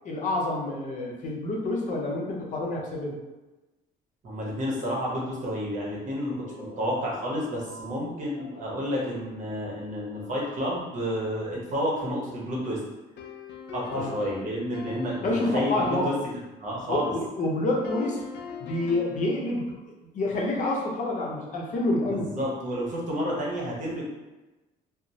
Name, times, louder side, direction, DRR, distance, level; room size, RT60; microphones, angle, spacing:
voice 1, 0.0-3.1 6.1-6.9 7.7-7.9 8.4-8.8 13.9-14.1 15.2-16.1 16.9-18.2 18.6-19.7 20.1-22.5, left 2 dB, 50° left, -2 dB, 0.7 m, -28 dB
voice 2, 4.2-12.8 13.7-15.3 15.5-16.1 16.6-17.1 22.1-24.1, equal, 50° right, -3 dB, 0.9 m, -30 dB
sound 1, 13.2-16.2 17.8-19.3, left 6 dB, 85° left, 0.4 m, -41 dB
2.8 x 2.1 x 2.7 m, 1.1 s
cardioid pair, 110°, 17 cm